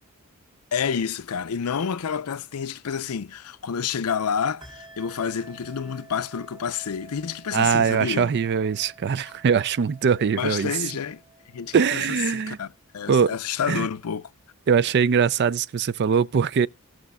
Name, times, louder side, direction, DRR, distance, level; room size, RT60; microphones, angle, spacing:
voice 1, 0.7-8.3 10.4-11.2 11.5-12.0 12.3-12.7 12.9-14.3, left 7 dB, 80° left, 0.5 m, -29 dB
sound 1, 4.6-12.7, right 2 dB, 20° right, 3.1 m, -50 dB
voice 2, 7.5-10.7 11.7-12.6 13.1-13.4 13.7-13.9 14.7-16.7, right 6 dB, 50° right, 0.4 m, -22 dB
18.5 x 6.3 x 2.2 m
head